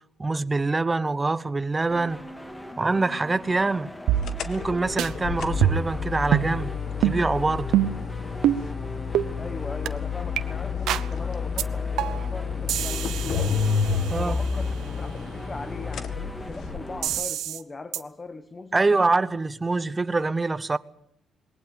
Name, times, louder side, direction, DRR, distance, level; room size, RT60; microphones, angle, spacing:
voice 1, 0.2-2.2 2.8-3.9 4.4-6.7 7.0-7.7 14.1-14.4 18.7-20.8, right 3 dB, 20° right, 1.0 m, -25 dB
sound 1, 1.9-17.2, equal, 10° left, 1.9 m, -40 dB
sound 2, 4.1-4.7 5.0-5.1 5.6-6.0 6.3-6.5 7.0-7.2 7.7-8.0 8.4-8.6 9.1-9.3 9.9-10.0 10.4-10.5 10.9-11.1 11.6-11.7 12.0-12.3 12.7-14.5 17.0-17.6 17.9-18.0, right 11 dB, 85° right, 1.0 m, -25 dB
sound 3, 4.2-17.1, left 5 dB, 70° left, 2.0 m, -30 dB
voice 2, 9.4-13.7 14.1-18.8, left 3 dB, 30° left, 1.3 m, -40 dB
21.0 x 18.5 x 9.0 m
cardioid pair, 90°, 0 cm